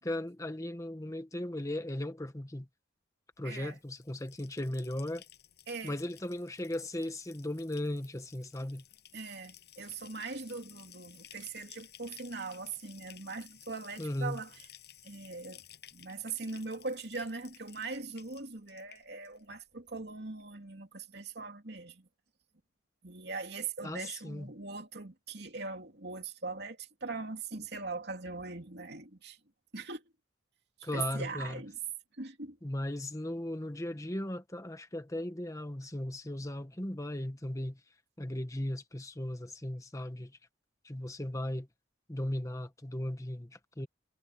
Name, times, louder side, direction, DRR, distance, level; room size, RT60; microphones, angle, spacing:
voice 1, 0.0-2.7 3.4-5.2 5.8-8.8 14.0-14.4 23.8-24.5 30.8-31.6 32.6-37.8 38.2-40.4 40.8-41.7 42.1-43.9, left 1 dB, 15° left, 1.3 m, -37 dB
voice 2, 3.4-3.8 5.7-5.9 9.1-14.5 15.0-15.6 15.9-22.1 23.0-29.4 29.7-30.0 30.8-31.8 32.2-32.6, right 4 dB, 60° right, 3.1 m, -41 dB
Bathtub (filling or washing), 3.5-19.6 19.9-20.4, left 12 dB, 60° left, 7.8 m, -56 dB
head